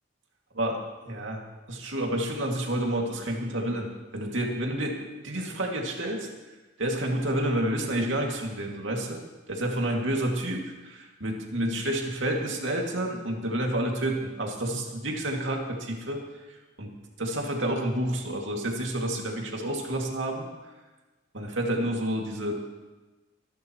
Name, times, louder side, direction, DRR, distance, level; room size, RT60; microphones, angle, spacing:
voice 1, 0.5-6.3 6.8-9.2 9.5-10.6 11.2-20.5 21.3-22.6, right 1 dB, 80° right, 1 dB, 2.3 m, -29 dB
23.0 x 12.0 x 3.1 m, 1.2 s
head